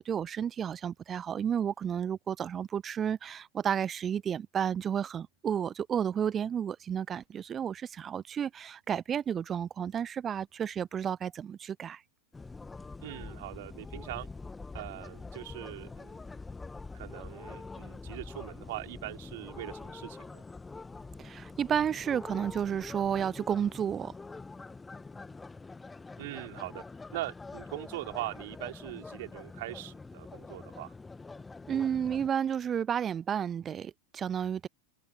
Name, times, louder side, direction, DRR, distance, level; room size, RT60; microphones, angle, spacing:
voice 1, 0.0-12.0 21.2-24.1 31.7-34.7, right 8 dB, 25° right, 0.6 m, -32 dB
sound 1, 12.3-32.3, left 3 dB, 10° left, 1.6 m, -45 dB
voice 2, 13.0-14.3 14.7-16.2 16.9-20.4 26.2-26.8 27.1-30.9, right 18 dB, 50° right, 3.8 m, -41 dB
figure-of-eight pair, 90°, 0 cm